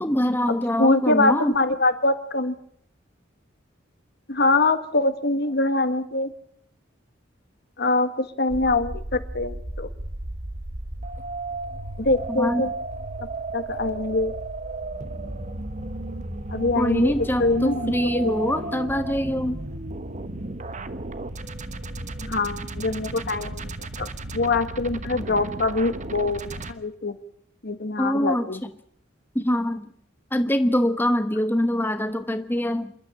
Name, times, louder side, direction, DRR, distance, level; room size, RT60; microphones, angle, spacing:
voice 1, 0.0-1.6 12.3-12.6 16.7-19.6 28.0-28.7 29.3-29.9 30.3-32.9, equal, 10° left, 9 dB, 1.0 m, -24 dB
voice 2, 0.8-2.5 4.3-6.3 7.8-9.9 12.0-12.7 13.5-14.3 16.5-17.1 17.4-18.5 22.2-23.6 24.0-24.1 24.3-27.1 27.6-28.6, left 2 dB, 60° left, 10 dB, 1.7 m, -24 dB
sound 1, 8.5-26.7, right 2 dB, 40° right, 1.2 m, -34 dB
27.5 x 12.0 x 9.1 m, 0.65 s
head